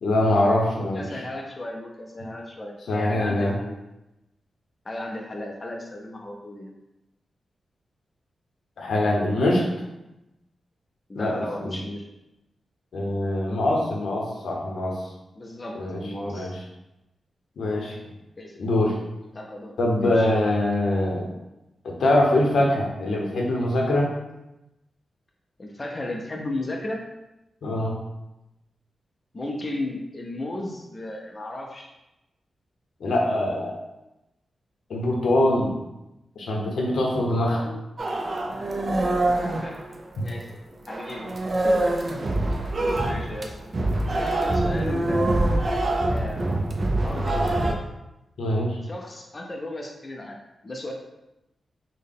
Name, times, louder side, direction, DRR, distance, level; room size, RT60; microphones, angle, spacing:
voice 1, 0.0-1.1 2.9-3.5 8.8-9.6 11.1-11.3 11.6-11.8 12.9-15.1 15.7-16.0 16.3-16.5 17.6-18.0 18.6-19.0 19.8-21.3 21.8-24.1 27.6-28.0 33.0-33.8 34.9-35.7 36.4-37.6 40.2-40.3 48.4-48.8, left 1 dB, 80° left, -1 dB, 0.7 m, -23 dB
voice 2, 0.8-3.8 4.8-6.7 11.1-12.1 15.4-16.6 18.4-18.6 19.3-20.3 25.6-27.0 29.3-31.9 37.5-37.8 39.3-39.8 40.2-40.5 40.8-41.3 41.5-42.0 43.0-43.5 44.1-45.4 46.1-46.6 47.0-47.8 48.8-50.4 50.6-50.9, left 1 dB, 30° left, 0 dB, 0.4 m, -35 dB
sound 1, 38.0-40.5 40.9-47.7, right 1 dB, 40° right, 0.4 m, -25 dB
3.8 x 2.1 x 3.5 m, 0.93 s
wide cardioid pair, 125°, 0 cm